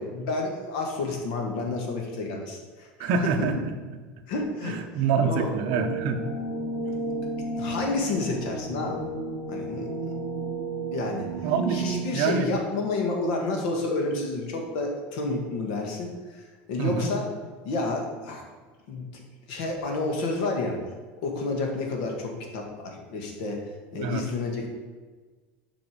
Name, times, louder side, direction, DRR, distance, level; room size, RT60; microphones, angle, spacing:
voice 1, 0.0-3.3 4.3-4.8 5.2-5.5 7.6-9.0 9.5-9.9 10.9-11.3 11.7-16.1 16.7-17.3 17.6-18.4 18.9-19.1 19.5-20.8 21.2-23.6 23.9-24.7, left 3 dB, 65° left, 1 dB, 1.8 m, -30 dB
voice 2, 3.0-3.7 4.6-6.2 11.4-11.8 12.1-12.5 16.8-17.1 23.9-24.2, right 5 dB, 50° right, 5 dB, 0.9 m, -26 dB
sound 1, 5.7-12.0, right 2 dB, 20° left, 2.2 m, -32 dB
7.6 x 5.3 x 5.1 m, 1.4 s
cardioid pair, 170°, 5 cm